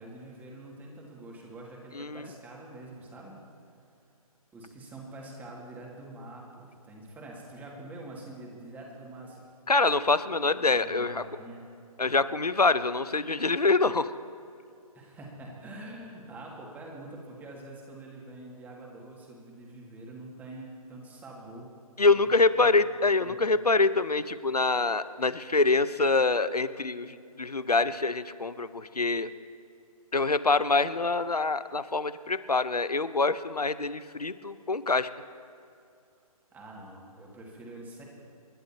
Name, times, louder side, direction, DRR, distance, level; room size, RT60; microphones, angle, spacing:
voice 1, 0.0-3.4 4.5-9.4 10.6-11.6 14.9-21.7 22.1-23.4 36.5-38.1, right 2 dB, 10° right, -2 dB, 2.2 m, -45 dB
voice 2, 1.9-2.3 9.7-11.2 12.0-14.1 22.0-29.3 30.1-35.1, left 3 dB, 90° left, 14 dB, 0.8 m, -25 dB
29.5 x 11.5 x 2.9 m, 2.5 s
figure-of-eight pair, 140°, 19 cm